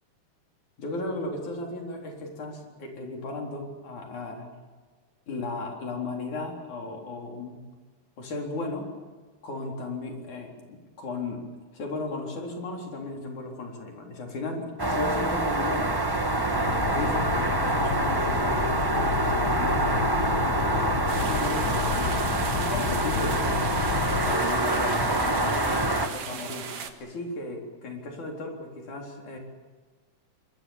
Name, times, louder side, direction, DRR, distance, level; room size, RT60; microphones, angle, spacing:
voice 1, 0.8-4.5 5.3-7.6 8.2-8.9 9.4-11.4 11.7-15.9 16.5-20.0 20.3-22.2 22.7-23.9 24.2-26.7 27.0-29.4, left 2 dB, 80° left, 1 dB, 5.4 m, -35 dB
sound 1, 14.8-26.1, right 2 dB, 25° right, 0.5 m, -26 dB
sound 2, 16.6-24.4, left 8 dB, 65° left, 1.4 m, -32 dB
sound 3, 21.1-26.9, right 6 dB, 55° right, 2.5 m, -37 dB
26.0 x 21.5 x 7.3 m, 1.4 s
omnidirectional pair, 3.4 m